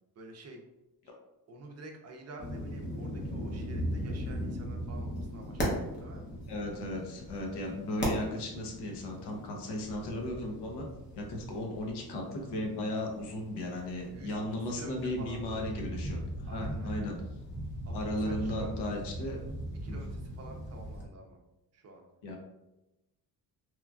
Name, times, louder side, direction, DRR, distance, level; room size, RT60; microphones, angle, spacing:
voice 1, 0.2-0.6 1.0-1.1 1.5-6.3 14.1-15.6 16.5-17.1 17.9-18.8 19.8-21.4 21.7-22.0, right 2 dB, 40° right, 2 dB, 0.5 m, -49 dB
sound 1, 2.4-21.0, equal, 30° left, 0.7 m, -39 dB
voice 2, 6.5-10.9 11.2-17.2 17.9-19.4 19.9-20.0 22.2-22.4, left 1 dB, 90° left, 0 dB, 0.8 m, -36 dB
2.9 x 2.3 x 2.3 m, 0.95 s
cardioid pair, 155°, 39 cm